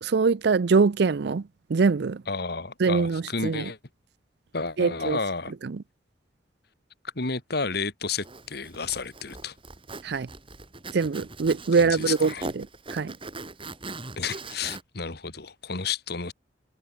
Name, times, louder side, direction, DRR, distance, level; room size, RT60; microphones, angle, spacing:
voice 1, 0.0-1.4 1.7-2.2 2.8-3.7 4.8-5.2 5.6-5.8 10.0-10.3 10.9-13.1, right 4 dB, 65° right, 0.5 m, -23 dB
voice 2, 2.3-3.8 4.5-5.5 7.2-9.5 11.8-12.4 14.2-16.3, left 4 dB, 65° left, 2.3 m, -31 dB
Zipper (clothing), 8.2-14.8, right 2 dB, 30° right, 5.0 m, -40 dB
head